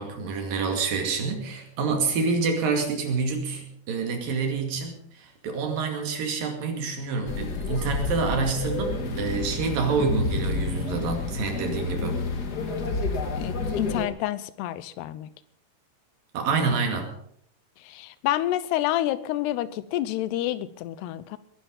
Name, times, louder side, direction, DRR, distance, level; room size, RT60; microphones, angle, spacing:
voice 1, 0.0-12.2 16.3-17.1, right 4 dB, 60° right, 4 dB, 3.9 m, -27 dB
sound 1, 7.3-14.1, left 3 dB, 50° left, 1.2 m, -29 dB
voice 2, 13.3-15.3 17.8-21.4, left 14 dB, 90° left, 16 dB, 2.9 m, -28 dB
20.5 x 11.5 x 5.4 m, 0.65 s
omnidirectional pair, 4.6 m